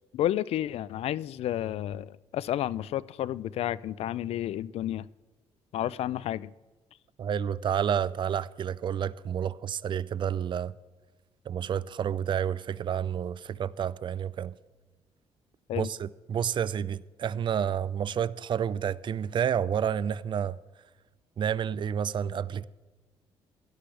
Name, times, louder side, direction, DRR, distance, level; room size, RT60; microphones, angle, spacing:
voice 1, 0.1-5.1 5.7-6.5 15.7-15.9, left 12 dB, 70° left, 0.4 m, -31 dB
voice 2, 7.2-10.7 11.5-14.5 15.8-20.6 21.4-22.7, right 8 dB, 45° right, 0.4 m, -30 dB
17.0 x 11.5 x 3.3 m
supercardioid pair, 70°, 11 cm